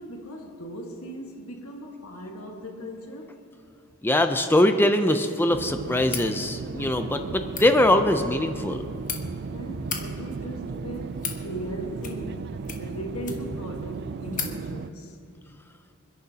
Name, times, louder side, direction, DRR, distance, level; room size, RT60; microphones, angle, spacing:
voice 1, 0.0-3.4 9.2-15.2, equal, 70° left, 1.5 m, -38 dB
voice 2, 4.0-8.9, left 1 dB, 10° left, 0.5 m, -22 dB
sound 1, 5.5-14.9, right 4 dB, 50° right, 0.4 m, -35 dB
sound 2, 6.0-6.3 7.4-7.7 8.6-9.2 9.8-10.0 10.8-11.4 12.0-12.4 12.6-13.6 13.9-14.0 14.3-14.5, left 7 dB, 35° left, 1.3 m, -34 dB
28.0 x 10.5 x 2.9 m
head